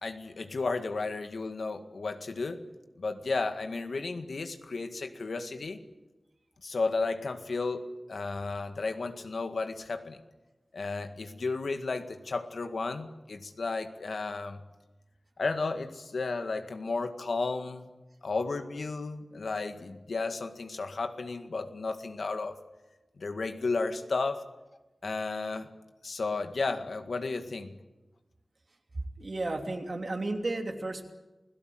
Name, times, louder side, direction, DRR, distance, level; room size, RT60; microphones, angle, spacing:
voice 1, 0.0-2.6 3.0-5.8 6.6-10.2 10.7-14.6 15.4-17.9 18.2-22.6 23.2-24.5 25.0-25.7 26.0-27.8, left 3 dB, 80° left, 7 dB, 2.0 m, -33 dB
voice 2, 29.0-31.1, right 2 dB, 55° right, 4 dB, 2.9 m, -33 dB
28.5 x 17.0 x 7.9 m, 1.1 s
wide cardioid pair, 80°, 0 cm